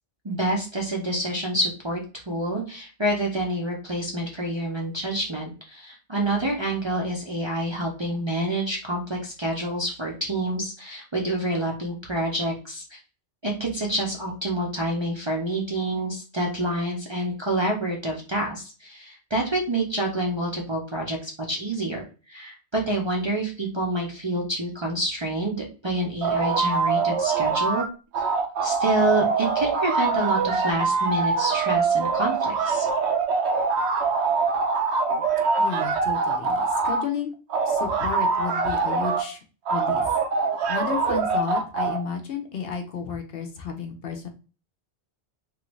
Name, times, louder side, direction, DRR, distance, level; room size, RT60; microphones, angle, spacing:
voice 1, 0.2-13.0 13.4-27.9 28.6-32.9, right 1 dB, 35° right, -2 dB, 0.5 m, -27 dB
sound 1, 26.2-27.9 28.1-37.0 37.5-39.3 39.7-42.0, right 4 dB, 75° right, 0.8 m, -24 dB
voice 2, 35.6-37.4 37.6-39.4 39.7-40.2 40.7-44.3, left 6 dB, 65° left, 5 dB, 0.8 m, -32 dB
3.1 x 2.5 x 3.0 m, 0.34 s
omnidirectional pair, 1.1 m